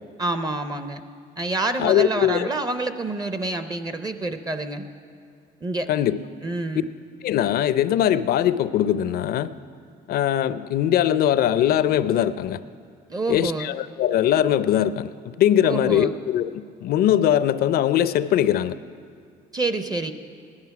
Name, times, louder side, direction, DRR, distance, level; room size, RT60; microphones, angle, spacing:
voice 1, 0.2-1.0 1.4-4.9 5.6-5.9 6.4-6.9 13.1-13.7 15.6-16.1 19.5-20.1, right 2 dB, 25° right, 9 dB, 0.6 m, -27 dB
voice 2, 1.8-2.5 5.9-6.2 7.2-9.5 10.1-12.6 13.3-15.1 15.4-18.8, left 11 dB, 65° left, 14 dB, 0.5 m, -21 dB
16.5 x 11.5 x 5.9 m, 2.2 s
cardioid pair, 110°, 17 cm